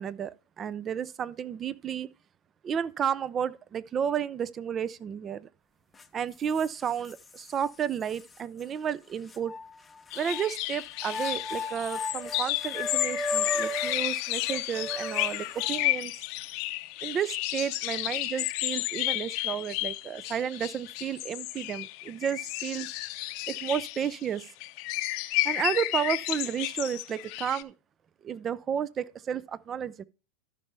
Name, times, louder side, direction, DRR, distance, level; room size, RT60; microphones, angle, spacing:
voice 1, 0.0-2.1 2.6-5.5 6.1-9.5 10.1-16.1 17.0-22.9 23.5-24.5 25.4-27.7 28.2-30.0, right 8 dB, 25° right, 0.5 m, -32 dB
sound 1, 6.0-6.1 6.6-7.5 8.1-8.2 9.3-10.5 11.0-15.9, left 1 dB, 15° left, 0.6 m, -36 dB
sound 2, 10.1-27.6, left 19 dB, 55° left, 0.6 m, -32 dB
13.0 x 5.5 x 3.4 m
supercardioid pair, 130°, 0 cm